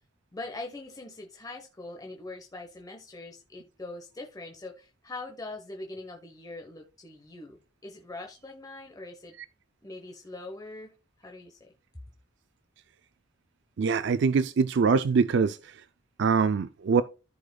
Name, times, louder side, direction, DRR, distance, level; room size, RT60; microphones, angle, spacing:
voice 1, 0.3-9.3 9.8-10.9 11.2-11.7, left 2 dB, 20° left, 1.0 m, -42 dB
voice 2, 13.8-15.6 16.2-17.0, right 5 dB, 65° right, 0.4 m, -23 dB
14.0 x 5.0 x 2.3 m
head